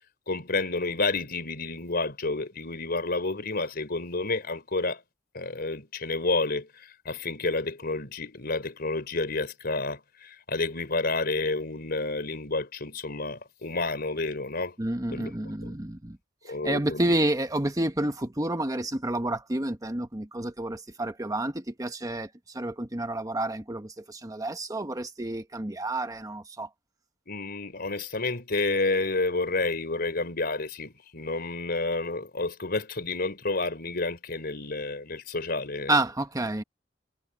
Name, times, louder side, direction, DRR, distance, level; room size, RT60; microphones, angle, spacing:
voice 1, 0.3-5.0 5.3-14.7 15.1-15.3 15.6-15.7 16.4-17.1 27.3-36.0, left 3 dB, 55° left, 4.0 m, -30 dB
voice 2, 14.8-16.2 16.6-26.7 35.9-36.6, right 1 dB, 20° right, 1.2 m, -29 dB
head